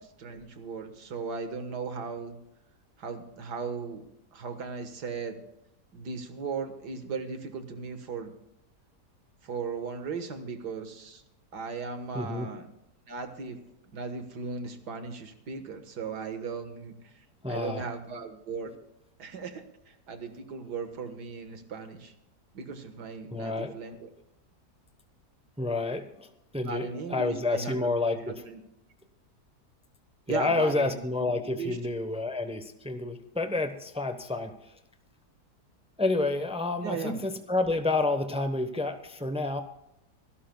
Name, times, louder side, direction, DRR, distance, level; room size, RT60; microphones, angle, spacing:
voice 1, 0.2-2.4 3.0-4.0 4.3-5.4 5.9-8.3 9.4-11.2 11.5-12.7 13.1-13.6 13.9-17.1 17.5-18.7 19.2-22.1 22.5-24.1 26.6-27.9 28.2-28.6 30.3-31.8 36.8-37.2, right 4 dB, 75° right, 7 dB, 2.0 m, -37 dB
voice 2, 12.1-12.5 17.4-17.8 23.3-23.7 25.6-26.3 26.5-28.3 30.3-34.5 36.0-39.6, left 2 dB, 5° right, 8 dB, 0.6 m, -29 dB
26.0 x 12.5 x 2.3 m, 0.82 s
omnidirectional pair, 1.8 m